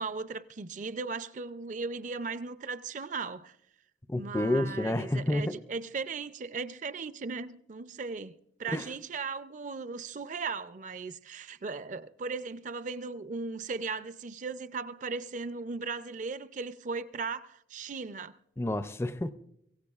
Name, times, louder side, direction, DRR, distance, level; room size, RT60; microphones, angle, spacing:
voice 1, 0.0-3.6 4.1-18.4, right 4 dB, 40° right, 0.4 m, -37 dB
voice 2, 4.1-5.6 8.7-8.9 18.6-19.3, left 1 dB, 15° left, 0.4 m, -29 dB
23.5 x 17.0 x 2.4 m
head